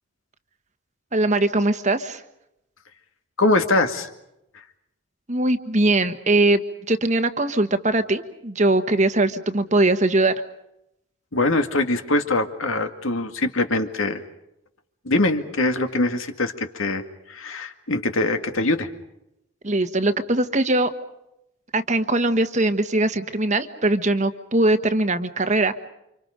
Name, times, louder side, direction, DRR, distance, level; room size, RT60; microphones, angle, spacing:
voice 1, 1.1-2.2 5.3-10.3 19.6-20.9 21.7-25.7, right 2 dB, 35° right, 9 dB, 1.3 m, -21 dB
voice 2, 3.4-4.1 11.3-14.2 15.1-18.9, left 2 dB, 70° left, 7 dB, 2.1 m, -23 dB
30.0 x 26.5 x 5.2 m, 0.84 s
head